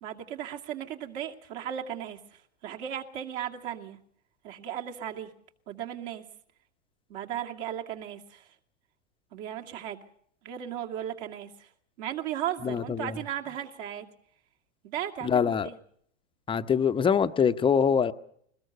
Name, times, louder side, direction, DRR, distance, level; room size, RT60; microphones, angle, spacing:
voice 1, 0.0-2.2 2.6-4.0 4.4-5.3 5.7-6.2 7.1-8.5 9.3-10.0 10.4-11.7 12.0-14.1 14.8-15.8, right 10 dB, 50° right, 3 dB, 2.6 m, -36 dB
voice 2, 12.6-13.1 15.2-15.7 16.5-18.1, left 7 dB, 15° left, 11 dB, 0.8 m, -24 dB
22.0 x 20.0 x 6.8 m, 0.66 s
hypercardioid pair, 120°, 37 cm